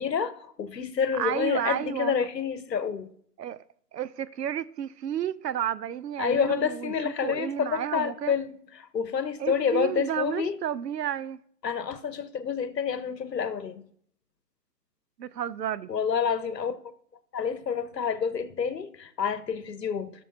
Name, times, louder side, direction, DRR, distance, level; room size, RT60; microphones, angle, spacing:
voice 1, 0.0-3.1 6.2-8.5 8.8-10.6 11.6-13.9 15.9-16.8 17.3-20.2, left 6 dB, 90° left, 1.1 m, -28 dB
voice 2, 1.2-2.3 3.4-3.6 3.9-8.3 9.4-11.4 15.2-15.9, right 10 dB, 75° right, 0.6 m, -32 dB
17.0 x 6.4 x 2.7 m
hypercardioid pair, 160°, 49 cm